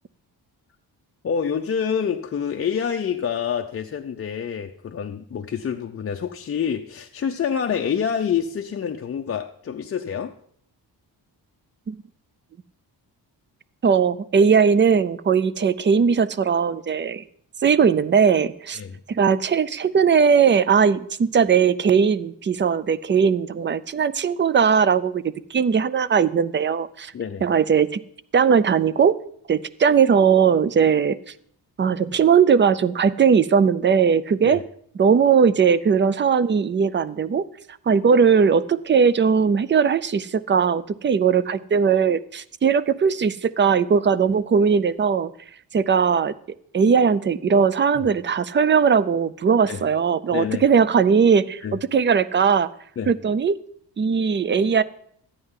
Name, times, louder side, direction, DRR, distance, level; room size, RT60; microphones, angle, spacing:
voice 1, 1.2-10.3 18.7-19.0 27.1-27.4 34.4-34.6 47.9-48.0 49.7-49.8 50.3-50.6 51.6-51.8 53.0-53.1, left 7 dB, 35° left, 3 dB, 0.5 m, -27 dB
voice 2, 13.8-17.2 17.6-18.8 19.1-25.2 25.5-27.1 27.4-28.0 28.3-29.1 29.5-31.2 31.8-34.6 35.0-37.4 37.9-45.3 45.7-46.3 46.7-52.7 53.1-53.6 54.0-54.8, right 6 dB, 30° right, 17 dB, 0.4 m, -19 dB
13.5 x 9.6 x 3.7 m, 0.65 s
wide cardioid pair, 125°, 41 cm